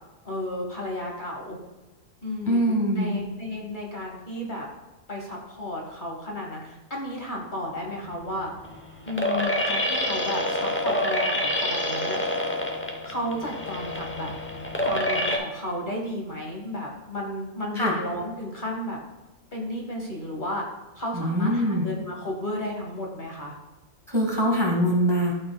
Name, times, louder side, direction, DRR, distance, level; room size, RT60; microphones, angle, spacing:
voice 1, 0.2-1.6 2.2-4.6 5.1-8.5 9.0-12.2 13.0-14.3 14.8-19.0 19.5-20.6 21.0-23.5, left 1 dB, 35° left, -1 dB, 1.1 m, -33 dB
voice 2, 2.5-3.2 17.8-17.9 21.1-21.9 24.1-25.3, equal, 20° right, -1 dB, 1.1 m, -23 dB
sound 1, 7.8-15.4, left 1 dB, 10° left, 0.6 m, -27 dB
12.0 x 6.0 x 2.2 m, 1.1 s
omnidirectional pair, 1.5 m